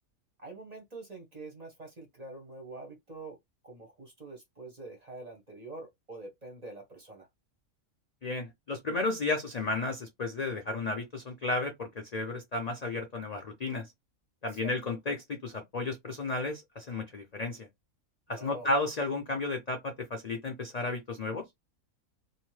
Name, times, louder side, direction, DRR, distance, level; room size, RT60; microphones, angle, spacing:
voice 1, 0.4-3.4 3.6-7.3 14.5-14.7 18.3-18.7, right 2 dB, 40° right, 0.6 m, -45 dB
voice 2, 8.2-13.9 14.4-17.7 18.3-21.4, left 2 dB, 50° left, 0.5 m, -33 dB
2.8 x 2.1 x 3.1 m
omnidirectional pair, 1.4 m